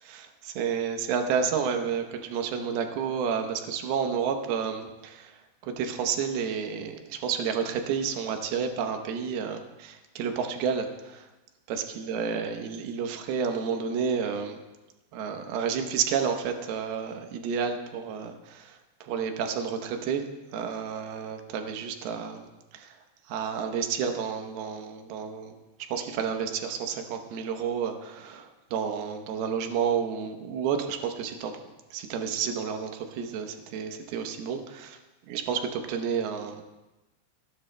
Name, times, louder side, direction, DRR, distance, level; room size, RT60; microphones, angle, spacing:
voice 1, 0.0-11.3 11.7-14.6 15.1-20.2 20.5-22.5 22.7-22.9 23.3-25.6 25.9-31.6 31.9-35.0 35.3-36.6, right 7 dB, 70° right, 5 dB, 2.7 m, -30 dB
28.0 x 11.5 x 2.2 m, 1.1 s
omnidirectional pair, 5.0 m